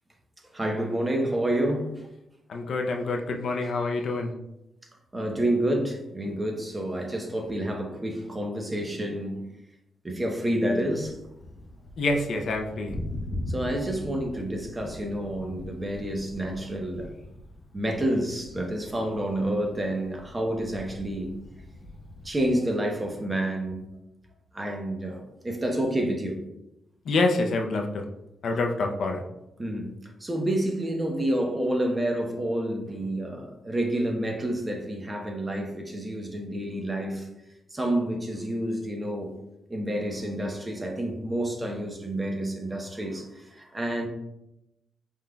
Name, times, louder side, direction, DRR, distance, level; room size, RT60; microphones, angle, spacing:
voice 1, 0.5-2.0 3.6-3.7 5.1-9.4 10.0-11.2 13.5-17.1 17.7-21.3 22.2-23.9 24.5-26.4 29.6-37.3 37.7-39.3 39.7-44.1, right 1 dB, 20° right, 2 dB, 0.8 m, -29 dB
voice 2, 2.5-4.3 12.0-12.9 27.0-28.0 28.4-29.2, left 3 dB, 65° left, 3 dB, 0.6 m, -26 dB
Thunder, 10.8-22.5, left 1 dB, 35° left, 0.8 m, -41 dB
5.6 x 3.6 x 2.3 m, 0.87 s
cardioid pair, 95°, 0 cm